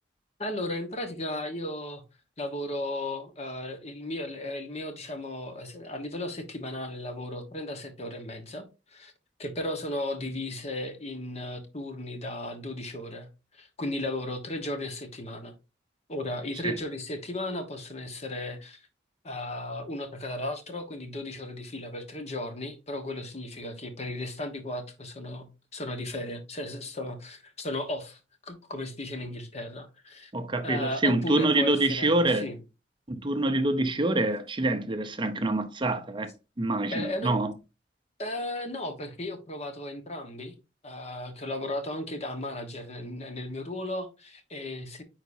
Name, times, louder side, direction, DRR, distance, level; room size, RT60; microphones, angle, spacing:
voice 1, 0.4-2.0 2.4-9.1 9.4-13.3 13.5-15.5 16.1-18.9 19.2-30.3 30.6-32.5 36.9-37.4 38.2-40.5 40.8-45.0, left 1 dB, 35° left, 1.3 m, -35 dB
voice 2, 30.3-32.5 33.1-37.5, right 2 dB, 25° right, 0.6 m, -26 dB
9.6 x 4.0 x 2.7 m
head